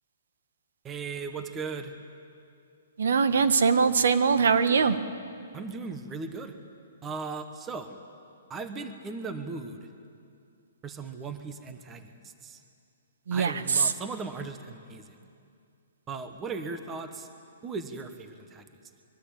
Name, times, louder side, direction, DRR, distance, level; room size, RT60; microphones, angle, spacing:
voice 1, 0.8-1.9 5.5-6.5 7.0-7.9 8.5-9.9 10.8-12.6 13.3-15.2 16.1-17.3 17.6-18.7, right 4 dB, 10° right, 7 dB, 1.2 m, -37 dB
voice 2, 3.0-5.0 13.3-13.9, right 5 dB, 70° right, 10 dB, 1.6 m, -22 dB
24.0 x 23.0 x 8.8 m, 2.5 s
hypercardioid pair, 170°, 0 cm